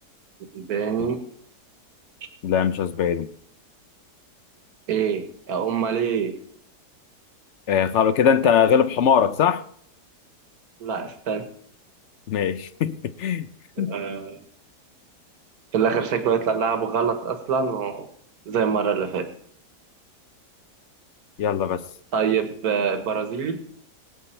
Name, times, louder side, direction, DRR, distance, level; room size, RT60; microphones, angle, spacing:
voice 1, 0.4-1.2 4.9-6.4 10.8-11.5 13.8-14.4 15.7-18.1 18.5-19.3 22.1-23.6, right 6 dB, 65° right, 1.8 m, -25 dB
voice 2, 2.4-3.3 7.7-9.6 12.3-13.5 13.8-13.9 21.4-21.8, left 7 dB, 60° left, 0.8 m, -21 dB
22.0 x 8.0 x 4.5 m
omnidirectional pair, 1.7 m